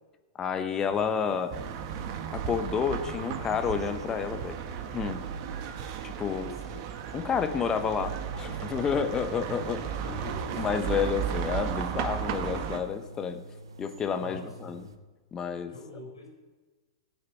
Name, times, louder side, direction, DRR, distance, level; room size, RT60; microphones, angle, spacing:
voice 1, 0.4-1.5 2.3-4.6 4.9-5.2 6.0-6.5 7.1-10.2 10.6-13.4 13.8-14.8 15.3-15.7, left 6 dB, 25° left, 9 dB, 1.1 m, -30 dB
voice 2, 0.9-1.2 6.3-6.8 10.2-10.9 14.1-14.9 15.7-16.3, left 2 dB, 90° left, 0 dB, 4.4 m, -46 dB
sound 1, 0.9-14.9, right 5 dB, 80° right, 0.9 m, -46 dB
sound 2, 1.5-12.8, right 8 dB, 45° right, 1.4 m, -35 dB
17.5 x 8.4 x 4.7 m, 1.2 s
hypercardioid pair, 105°, 3 cm